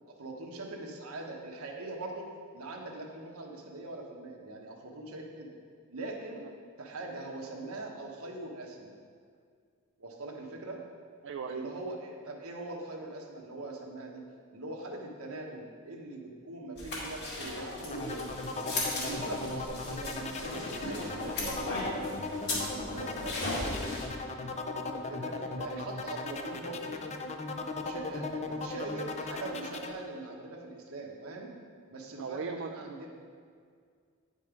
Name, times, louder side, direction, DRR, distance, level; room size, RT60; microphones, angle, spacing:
voice 1, 0.1-5.5 5.9-6.4 6.8-8.9 10.0-10.8 11.4-14.2 14.5-18.4 19.0-23.9 24.4-27.0 27.8-31.5 31.9-33.1, right 2 dB, 75° right, 1 dB, 1.2 m, -42 dB
voice 2, 11.2-11.7 19.5-19.7 32.2-33.0, right 5 dB, 60° right, 5 dB, 0.4 m, -39 dB
sound 1, 16.8-24.0, left 1 dB, 55° left, 2.5 m, -36 dB
sound 2, 17.9-29.9, left 3 dB, 30° left, 0.5 m, -38 dB
9.3 x 5.3 x 5.1 m, 2.1 s
head